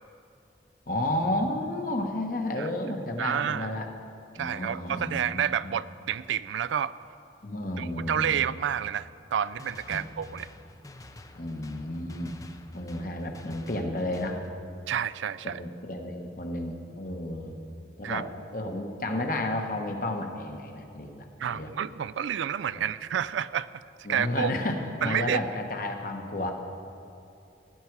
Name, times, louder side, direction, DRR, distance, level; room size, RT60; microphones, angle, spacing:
voice 1, 0.9-3.9 4.4-5.7 7.4-8.4 9.9-10.0 11.3-12.3 12.7-14.4 15.4-17.6 18.0-18.3 18.5-21.7 22.7-22.8 24.0-26.5, left 1 dB, 50° left, 3 dB, 1.1 m, -32 dB
voice 2, 3.2-3.7 4.3-6.9 7.8-10.5 14.9-15.6 18.0-18.2 21.4-23.7 24.1-24.5 25.0-25.4, right 8 dB, 85° right, 16 dB, 0.4 m, -29 dB
sound 1, 9.4-14.5, left 2 dB, 20° left, 0.5 m, -49 dB
16.5 x 9.9 x 4.7 m, 2.7 s
head